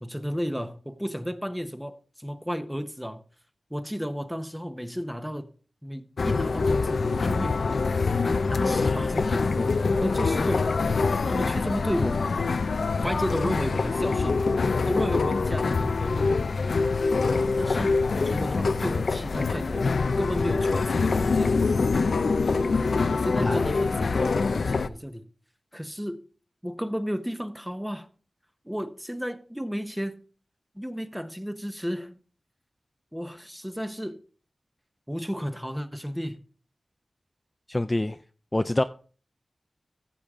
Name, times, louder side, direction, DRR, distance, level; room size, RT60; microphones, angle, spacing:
voice 1, 0.0-3.2 3.7-5.5 5.8-7.8 8.4-9.8 10.0-10.7 11.3-12.2 13.0-14.4 14.9-16.3 17.6-21.6 23.1-25.3 25.7-26.2 26.6-28.1 28.6-30.2 30.7-32.2 33.1-34.2 35.1-36.4, equal, 5° right, 1.0 m, -33 dB
sound 1, 6.2-24.9, left 4 dB, 80° left, 0.5 m, -25 dB
voice 2, 37.7-38.2 38.5-38.8, left 1 dB, 25° left, 0.4 m, -25 dB
15.0 x 7.0 x 3.7 m
wide cardioid pair, 65°, 0 cm